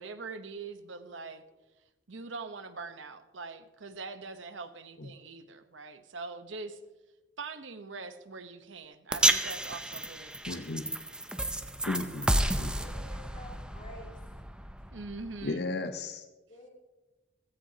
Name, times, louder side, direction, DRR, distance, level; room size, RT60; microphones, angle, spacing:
voice 1, 0.0-1.4 2.1-6.8 7.4-10.6 14.9-15.7, right 4 dB, 80° right, 9 dB, 1.0 m, -43 dB
sound 1, 9.1-15.5, right 1 dB, 5° right, 0.6 m, -32 dB
voice 2, 10.5-10.9 11.9-13.0 15.4-16.2, left 2 dB, 55° left, 7 dB, 0.8 m, -35 dB
voice 3, 12.6-14.2 16.5-16.7, equal, 40° left, -2 dB, 2.9 m, -50 dB
16.0 x 16.0 x 2.9 m, 1.1 s
head